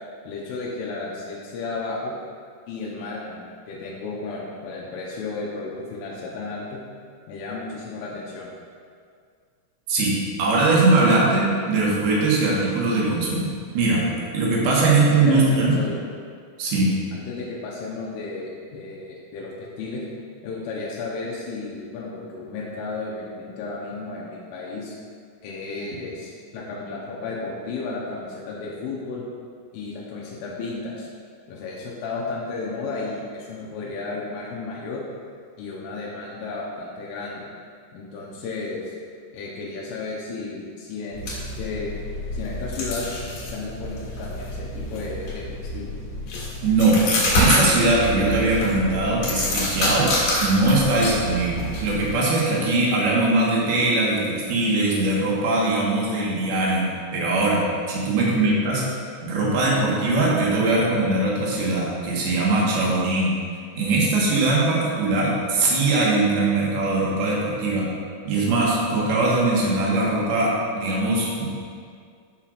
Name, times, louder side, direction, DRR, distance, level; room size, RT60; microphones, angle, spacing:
voice 1, 0.2-2.1 2.7-6.8 7.3-8.5 14.8-15.0 15.3-16.1 17.1-20.0 20.4-25.0 25.4-29.2 29.7-31.1 31.5-35.0 35.6-37.5 37.9-38.9 39.3-41.9 42.3-43.1 43.5-45.9 51.4-51.6 58.2-58.9, left 3 dB, 80° left, -4 dB, 3.4 m, -33 dB
voice 2, 9.9-14.1 14.3-15.8 16.6-17.0 46.6-50.1 50.4-58.8 59.2-63.4 63.8-67.9 68.2-71.5, right 2 dB, 65° right, -5 dB, 2.9 m, -21 dB
sound 1, 41.1-52.2, left 1 dB, 55° left, 2.5 m, -27 dB
14.5 x 5.7 x 2.5 m, 2.1 s
omnidirectional pair, 5.6 m